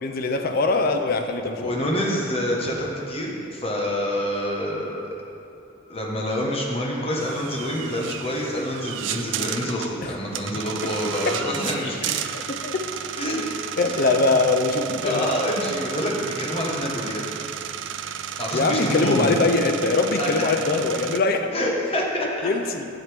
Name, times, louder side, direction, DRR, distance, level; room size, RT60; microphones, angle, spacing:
voice 1, 0.0-1.7 10.0-10.1 10.8-10.9 11.3-11.4 12.5-12.8 13.8-15.3 18.5-21.5 22.4-22.9, left 3 dB, 50° left, 6 dB, 0.5 m, -22 dB
voice 2, 1.6-5.1 5.9-12.1 13.2-14.0 15.0-17.2 18.4-19.4 20.2-20.5 21.5-22.5, equal, 30° left, -2 dB, 1.1 m, -27 dB
sound 1, 7.2-21.2, right 9 dB, 65° right, 0.4 m, -33 dB
8.9 x 7.7 x 3.4 m, 3.0 s
head